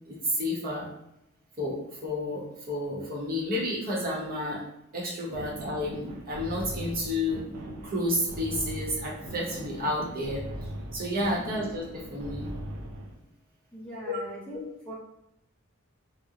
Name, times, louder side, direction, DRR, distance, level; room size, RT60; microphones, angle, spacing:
voice 1, 0.1-0.9 1.6-4.6 4.9-7.4 7.8-10.5 10.9-12.5 14.1-14.2, left 1 dB, 45° right, -4 dB, 0.7 m, -31 dB
sound 1, 5.3-13.1, right 1 dB, 80° right, 0.5 m, -40 dB
voice 2, 13.7-14.9, equal, 5° left, -6 dB, 0.5 m, -40 dB
2.7 x 2.0 x 2.3 m, 0.82 s
head